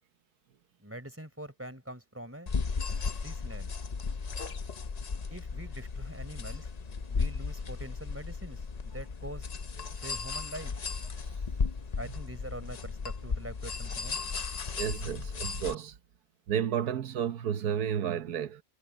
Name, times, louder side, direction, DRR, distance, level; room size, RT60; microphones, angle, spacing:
voice 1, 0.8-2.5 3.2-3.7 5.3-6.7 7.1-9.5 10.0-10.7 12.0-14.2, right 1 dB, 10° right, 4.0 m, -44 dB
sound 1, 2.5-15.7, left 4 dB, 40° left, 0.6 m, -35 dB
voice 2, 14.8-16.0 16.5-18.6, right 8 dB, 90° right, 1.5 m, -32 dB
omnidirectional pair, 1.6 m